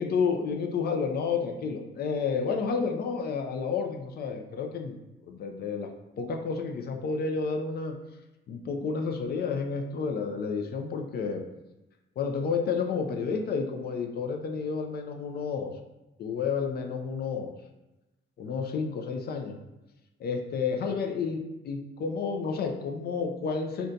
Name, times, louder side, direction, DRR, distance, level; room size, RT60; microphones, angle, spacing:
voice 1, 0.0-5.9 6.2-8.0 8.5-11.4 12.2-15.7 16.2-17.5 18.4-19.6 20.2-23.9, left 5 dB, 55° left, 3 dB, 0.4 m, -30 dB
2.6 x 2.2 x 3.8 m, 0.97 s
cardioid pair, 90°, 20 cm